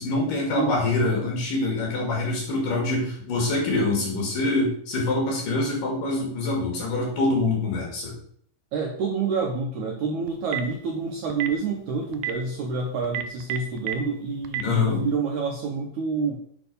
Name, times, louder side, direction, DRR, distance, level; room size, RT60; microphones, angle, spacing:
voice 1, 0.0-8.1 14.6-15.0, left 2 dB, 60° left, -2 dB, 3.8 m, -25 dB
voice 2, 8.7-16.4, right 4 dB, 70° right, 0 dB, 1.9 m, -28 dB
Telephone, 10.3-10.7 11.3-11.5 12.1-12.3 13.0-13.9 14.4-14.6, right 12 dB, 90° right, 1.8 m, -28 dB
8.2 x 4.1 x 5.4 m, 0.63 s
omnidirectional pair, 4.4 m